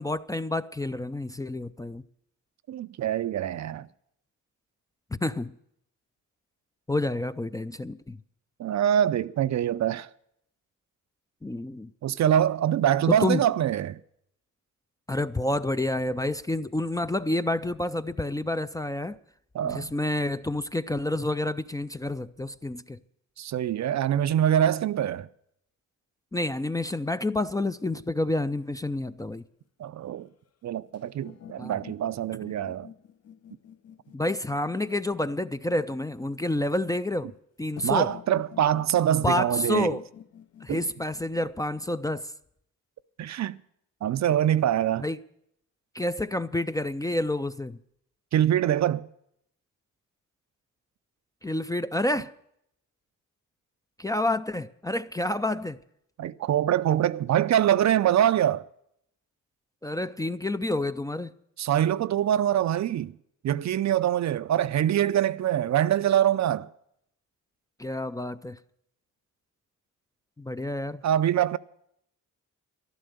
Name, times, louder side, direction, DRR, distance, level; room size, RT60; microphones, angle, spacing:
voice 1, 0.0-2.0 5.1-5.5 6.9-8.2 11.4-11.9 13.1-13.4 15.1-19.2 19.6-23.0 26.3-29.4 31.6-31.8 34.1-37.3 37.6-38.1 39.2-40.0 40.6-42.3 45.0-45.2 45.9-47.8 51.4-52.3 54.0-55.8 59.8-61.3 67.8-68.6 70.4-71.0, left 1 dB, 10° left, 0.4 m, -29 dB
voice 2, 2.7-3.9 8.6-10.1 12.0-14.0 19.5-19.9 23.4-25.3 29.8-30.3 30.6-32.9 37.8-40.0 40.7-40.8 43.2-43.6 44.0-45.1 48.3-49.1 56.2-58.7 61.6-63.2 63.4-66.7 71.0-71.6, right 11 dB, 55° right, 0.5 m, -24 dB
sound 1, 27.4-29.4 30.9-36.4 37.8-42.0, left 9 dB, 50° left, 0.7 m, -49 dB
12.0 x 11.5 x 6.6 m
cardioid pair, 80°, 33 cm